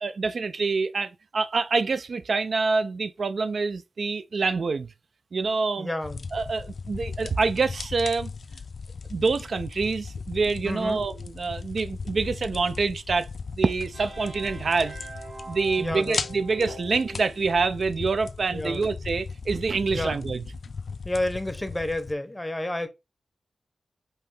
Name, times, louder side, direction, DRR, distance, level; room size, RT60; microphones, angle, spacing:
voice 1, 0.0-4.9 5.3-5.9 6.3-8.3 9.1-13.3 13.5-15.0 15.5-20.4, right 4 dB, 60° right, 0.3 m, -26 dB
voice 2, 5.8-6.3 10.6-11.0 15.8-16.2 18.5-18.8 19.9-20.2 21.0-22.9, left 1 dB, 10° left, 0.7 m, -30 dB
sound 1, 6.0-22.1, left 5 dB, 55° left, 0.4 m, -38 dB
sound 2, 13.9-17.7, right 1 dB, 40° right, 1.8 m, -42 dB
5.4 x 2.8 x 3.2 m
wide cardioid pair, 120°, 0 cm